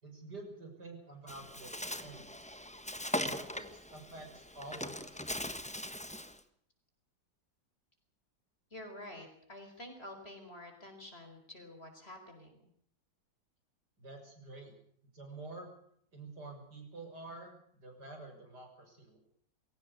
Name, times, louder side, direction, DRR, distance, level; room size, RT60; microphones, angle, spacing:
voice 1, 0.0-2.6 3.2-5.4 14.0-14.7 15.1-15.7 16.1-19.2, right 2 dB, 60° right, 3 dB, 6.9 m, -49 dB
Bird, 1.3-6.4, left 1 dB, 5° left, 1.0 m, -40 dB
voice 2, 8.7-12.6, left 1 dB, 30° left, 5 dB, 5.0 m, -49 dB
22.0 x 17.5 x 8.4 m, 0.66 s
omnidirectional pair, 2.0 m